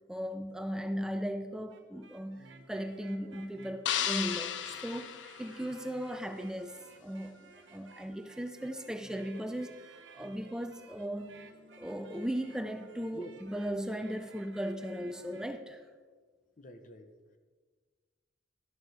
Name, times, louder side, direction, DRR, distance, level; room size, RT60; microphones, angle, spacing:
voice 1, 0.1-7.3 7.7-11.4 11.8-15.8, equal, 5° right, 7 dB, 0.5 m, -37 dB
sound 1, 1.5-15.5, right 3 dB, 85° right, 1.0 m, -56 dB
sound 2, 3.9-6.1, left 9 dB, 80° left, 0.6 m, -35 dB
voice 2, 16.6-17.1, right 1 dB, 45° left, 7 dB, 0.8 m, -48 dB
12.5 x 6.7 x 4.8 m, 1.4 s
head